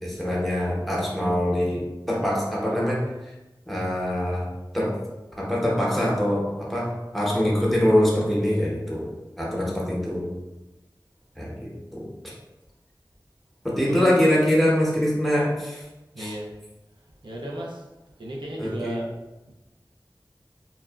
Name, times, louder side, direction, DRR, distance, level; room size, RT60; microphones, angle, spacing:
voice 1, 0.0-3.0 3.7-4.4 4.7-4.9 5.4-6.9 7.1-9.1 9.4-10.3 11.4-12.3 13.6-15.8 16.2-16.4 18.6-19.0, equal, ahead, -5 dB, 0.8 m, -24 dB
voice 2, 16.2-16.5 17.2-17.8 18.2-19.0, right 1 dB, 85° right, -3 dB, 0.4 m, -34 dB
2.8 x 2.3 x 2.3 m, 1.1 s
wide cardioid pair, 45°, 8 cm